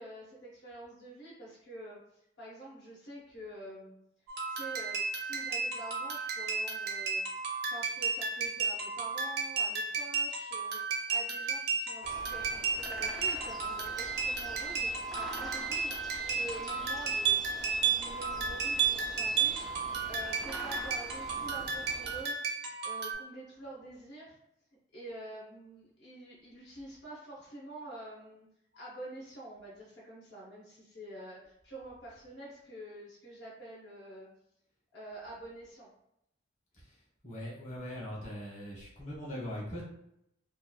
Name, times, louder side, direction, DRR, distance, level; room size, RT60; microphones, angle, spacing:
voice 1, 0.0-3.9 4.5-7.2 7.7-10.8 11.1-24.4 24.9-28.5 28.7-34.3 34.9-35.9, right 1 dB, 65° left, -5 dB, 0.7 m, -47 dB
sound 1, 4.3-23.1, right 5 dB, 60° right, 0.5 m, -33 dB
sound 2, 12.0-22.2, equal, ahead, 0.3 m, -46 dB
voice 2, 37.2-39.8, equal, 40° left, -5 dB, 0.9 m, -40 dB
2.9 x 2.2 x 2.2 m, 0.79 s
head